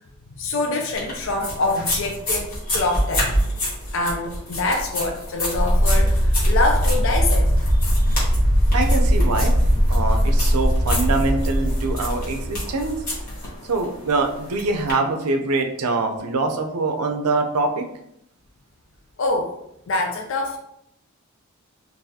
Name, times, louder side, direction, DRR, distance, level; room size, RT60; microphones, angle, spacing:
voice 1, 0.3-3.3 3.9-7.7 19.2-19.5 19.9-20.6, left 2 dB, 55° left, 2 dB, 0.4 m, -25 dB
sound 1, 0.9-14.9, left 1 dB, 40° left, 1.3 m, -29 dB
sound 2, 5.5-13.1, equal, 25° right, 0.6 m, -19 dB
voice 2, 8.7-9.5 9.9-13.0 13.7-17.8, right 3 dB, 90° right, 4 dB, 0.5 m, -24 dB
3.9 x 2.6 x 2.7 m, 0.76 s
head